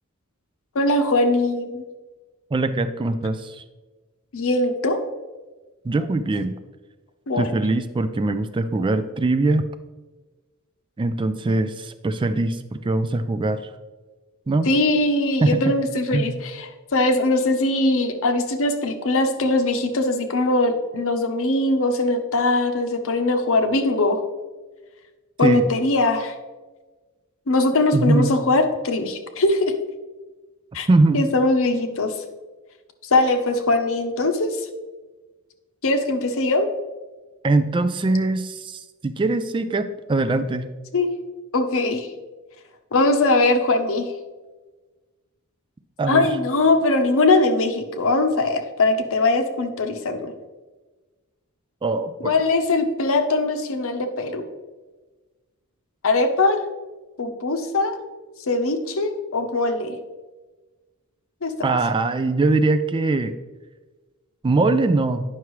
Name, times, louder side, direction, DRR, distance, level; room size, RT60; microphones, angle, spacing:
voice 1, 0.7-1.8 4.3-5.0 7.3-7.6 14.6-24.2 25.4-26.3 27.5-29.7 30.7-30.9 31.1-32.1 33.1-34.7 35.8-36.7 40.9-41.1 41.5-42.1 42.9-44.1 46.1-50.3 52.2-54.4 56.0-56.6 57.2-57.9 58.5-59.9 61.4-61.5, left 2 dB, 65° left, 7 dB, 0.8 m, -21 dB
voice 2, 2.5-3.6 5.8-6.5 7.4-9.6 11.0-13.7 14.5-14.7 15.4-15.7 16.1-16.4 25.4-25.6 27.9-28.3 30.9-31.2 37.4-40.7 46.0-46.3 51.8-52.3 61.6-63.3 64.4-65.2, right 2 dB, 20° right, 11 dB, 0.3 m, -22 dB
9.6 x 5.8 x 3.1 m, 1.3 s
head